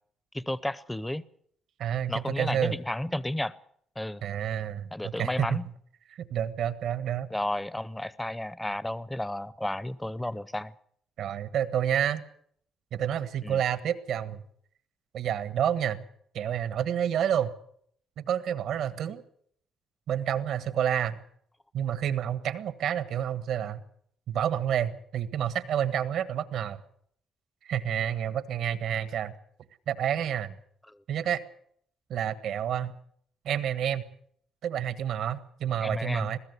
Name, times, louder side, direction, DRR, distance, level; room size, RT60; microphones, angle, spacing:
voice 1, 0.3-1.2 2.1-3.5 4.0-4.2 4.9-5.7 7.3-10.7 13.4-13.6 30.9-31.0 35.8-36.3, left 1 dB, 10° left, 17 dB, 0.7 m, -32 dB
voice 2, 1.8-2.8 4.2-5.6 6.1-7.3 11.2-12.2 12.9-14.4 15.1-16.0 16.3-17.5 18.2-19.2 20.1-21.2 21.7-23.8 24.3-26.8 27.6-29.3 29.9-30.6 31.1-31.4 32.1-33.0 33.4-34.1 34.6-36.4, right 9 dB, 75° right, 13 dB, 1.5 m, -29 dB
21.5 x 15.5 x 8.2 m, 0.66 s
cardioid pair, 90°, 0 cm